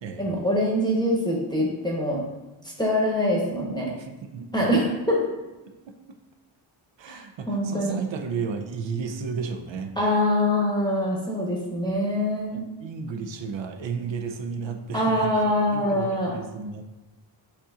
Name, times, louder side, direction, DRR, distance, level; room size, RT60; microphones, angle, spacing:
voice 1, 0.2-2.2 2.8-3.9 4.5-5.2 7.1-7.2 7.5-7.9 10.0-12.6 14.9-16.3, left 1 dB, 10° left, -5 dB, 0.9 m, -24 dB
voice 2, 4.0-4.7 5.7-6.2 7.0-9.9 11.9-12.0 12.5-15.3 15.7-16.8, right 5 dB, 65° right, 6 dB, 0.5 m, -33 dB
6.6 x 2.8 x 2.4 m, 1.1 s
wide cardioid pair, 95°, 50 cm